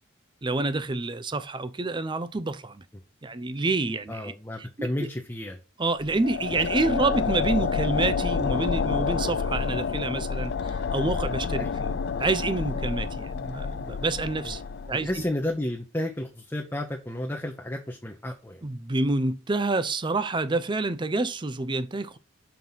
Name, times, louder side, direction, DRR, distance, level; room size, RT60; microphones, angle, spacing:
voice 1, 0.4-2.8 3.2-4.3 4.6-5.1 5.8-11.9 12.2-14.6 14.9-15.2 18.6-22.2, right 2 dB, 25° right, 0.5 m, -28 dB
voice 2, 4.1-5.6 11.6-11.8 14.4-14.6 15.0-18.6, left 1 dB, 10° left, 0.8 m, -32 dB
sound 1, 6.0-15.3, left 5 dB, 60° left, 0.4 m, -29 dB
5.9 x 4.6 x 5.4 m
head